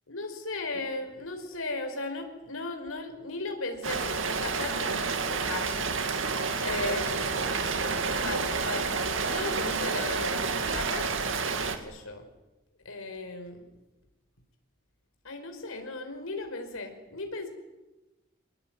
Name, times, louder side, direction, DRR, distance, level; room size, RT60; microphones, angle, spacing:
voice 1, 0.1-6.0 6.6-7.3 8.1-11.2 11.7-12.3 12.8-13.6 15.2-17.5, left 2 dB, 90° left, 6 dB, 4.8 m, -36 dB
Rain, 3.8-11.8, right 4 dB, 70° right, 2.3 m, -29 dB
25.5 x 20.5 x 9.3 m, 1.0 s
head